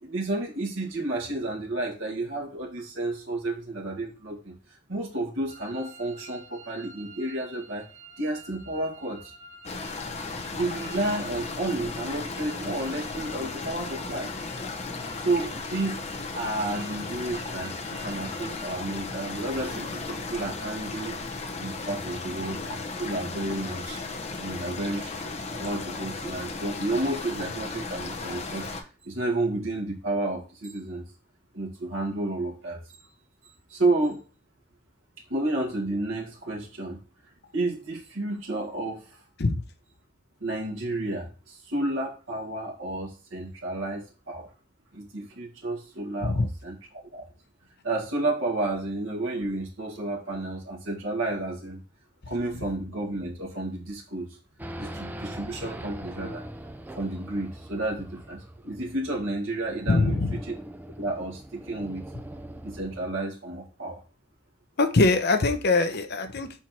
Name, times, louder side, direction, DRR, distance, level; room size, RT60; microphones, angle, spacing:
voice 1, 0.0-4.5 4.9-7.9 8.2-9.3 10.5-14.3 15.2-16.0 16.3-21.2 21.6-24.0 24.4-28.7 29.0-31.0 31.5-32.8 33.7-34.2 35.3-37.0 37.5-39.2 40.4-44.5 44.9-46.7 47.1-47.3 47.8-51.8 52.3-54.3 54.8-56.4 57.0-60.2 60.5-60.6 61.0-62.0 62.6-64.0, right 2 dB, 80° right, 1.9 m, -31 dB
sound 1, 5.5-18.8, right 1 dB, 35° right, 1.6 m, -49 dB
sound 2, 9.6-28.8, left 3 dB, 35° left, 1.0 m, -35 dB
Race car auto racing / Idling / Accelerating revving vroom, 54.6-63.2, right 1 dB, 10° right, 0.4 m, -42 dB
voice 2, 59.9-60.4 64.8-66.6, left 3 dB, 55° left, 0.8 m, -23 dB
4.5 x 4.5 x 5.9 m
head